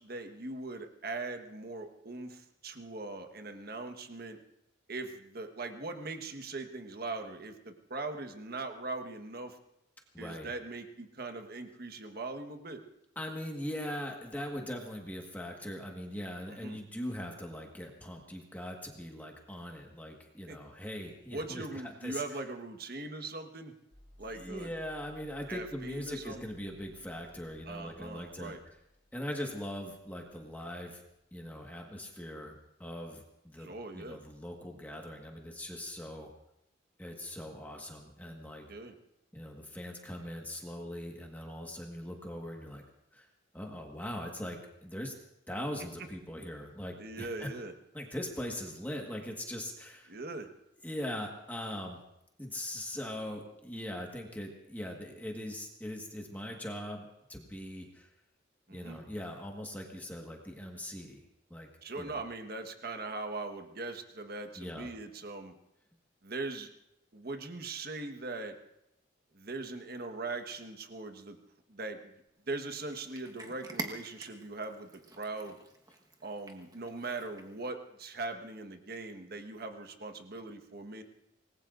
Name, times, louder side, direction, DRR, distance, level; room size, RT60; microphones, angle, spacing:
voice 1, 0.0-4.4 4.9-9.6 10.2-12.8 16.5-16.8 20.5-20.6 21.3-23.7 24.2-24.7 25.5-26.5 27.7-28.6 33.6-34.2 38.7-38.9 47.0-47.7 50.1-50.5 58.7-59.0 61.8-65.5 66.2-66.7 67.1-68.6 69.3-71.4 71.7-72.1 72.5-75.6 76.2-81.0, right 3 dB, 50° right, 6 dB, 1.4 m, -40 dB
voice 2, 10.1-10.5 13.1-22.4 24.3-28.6 29.1-31.0 31.3-36.3 37.0-38.7 39.3-42.8 43.1-43.3 43.5-45.1 45.5-47.5 47.9-50.2 50.8-52.0 52.4-58.1 58.7-61.2 61.5-61.7 62.0-62.2 64.6-64.9, left 1 dB, 10° left, 1 dB, 1.6 m, -41 dB
sound 1, 23.9-32.0, left 1 dB, 30° left, 2.1 m, -60 dB
Cat, 72.5-77.7, right 2 dB, 20° right, 1.3 m, -47 dB
26.5 x 20.0 x 2.6 m, 0.84 s
head